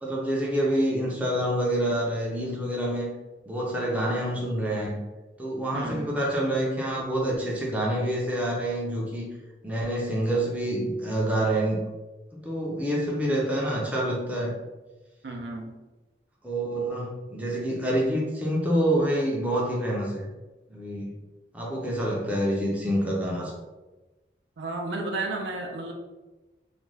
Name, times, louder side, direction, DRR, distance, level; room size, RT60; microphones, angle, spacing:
voice 1, 0.0-3.1 3.5-5.0 5.4-9.3 9.6-11.8 12.3-14.5 16.4-20.2 20.7-21.1 21.5-23.6, right 1 dB, 10° right, -4 dB, 0.4 m, -27 dB
voice 2, 5.7-6.1 15.2-15.7 24.6-25.9, right 2 dB, 85° right, 1 dB, 0.5 m, -32 dB
2.4 x 2.2 x 3.1 m, 1.1 s
head